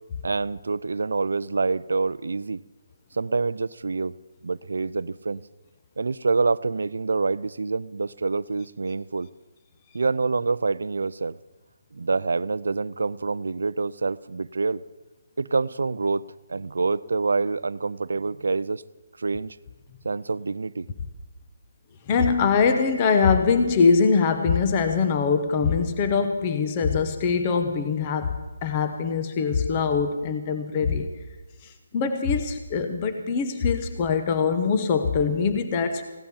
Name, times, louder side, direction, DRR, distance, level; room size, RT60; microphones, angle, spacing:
voice 1, 0.2-2.6 3.1-4.1 4.4-5.4 6.0-9.3 9.9-11.4 11.9-14.8 15.4-18.8 19.2-19.6 20.0-20.9, right 4 dB, 80° right, 18 dB, 0.4 m, -26 dB
voice 2, 22.1-31.1 31.6-36.0, left 5 dB, 20° left, 8 dB, 0.9 m, -23 dB
16.0 x 11.5 x 7.1 m, 1.2 s
hypercardioid pair, 170°, 0 cm